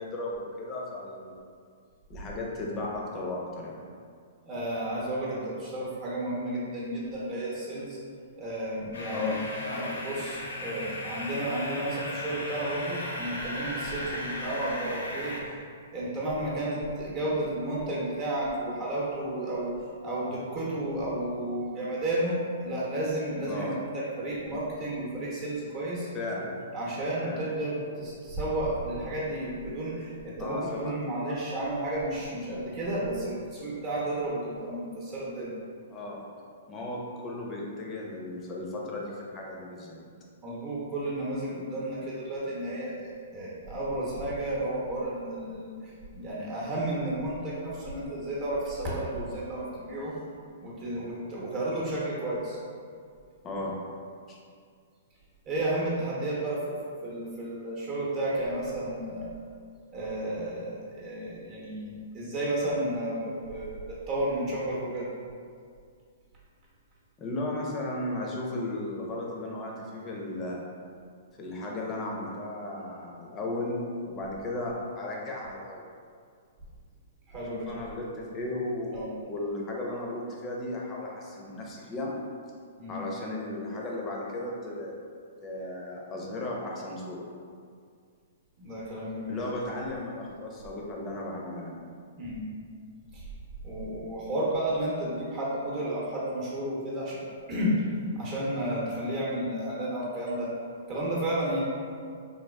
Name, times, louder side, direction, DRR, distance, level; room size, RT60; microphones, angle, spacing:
voice 1, 0.0-1.4 2.1-3.8 9.1-9.4 23.5-23.7 26.1-26.6 27.2-27.4 30.4-30.9 35.9-36.2 36.7-40.0 53.4-53.8 54.3-54.4 67.2-70.7 71.4-75.9 77.5-78.9 79.2-82.1 82.9-85.0 85.4-87.2 89.3-91.8, left 2 dB, 25° left, -2 dB, 0.6 m, -35 dB
voice 2, 4.4-8.0 8.4-9.4 9.7-15.4 15.9-19.7 20.0-26.1 26.7-35.5 40.4-50.2 50.6-52.6 55.5-56.7 57.0-59.3 59.9-65.1 77.3-77.7 78.9-79.1 82.8-83.0 88.6-89.4 92.2-92.5 93.1-93.3 93.6-97.2 97.5-97.8 98.1-100.5 100.9-101.6, right 1 dB, 35° right, -7 dB, 0.8 m, -32 dB
sound 1, 8.9-15.4, left 1 dB, 80° left, 0.5 m, -36 dB
3.4 x 2.2 x 2.2 m, 2.2 s
hypercardioid pair, 120°, 0 cm